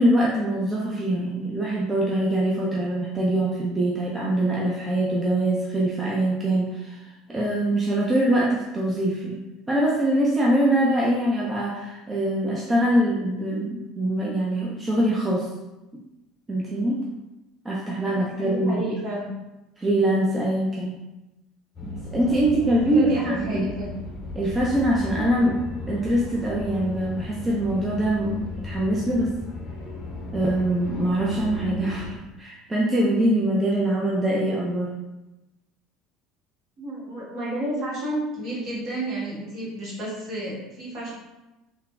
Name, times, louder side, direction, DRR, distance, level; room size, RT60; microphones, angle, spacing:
voice 1, 0.0-9.4 9.7-15.5 16.5-17.0 17.6-18.9 19.8-21.0 21.8-23.7 24.3-29.3 30.3-34.9, right 1 dB, 20° right, -4 dB, 0.4 m, -23 dB
voice 2, 18.0-19.3 22.3-23.9 36.8-41.1, right 1 dB, 50° right, -7 dB, 1.2 m, -31 dB
sound 1, 21.8-32.1, left 1 dB, 45° left, 0.6 m, -36 dB
3.1 x 2.1 x 2.4 m, 1.0 s
figure-of-eight pair, 65°, 0 cm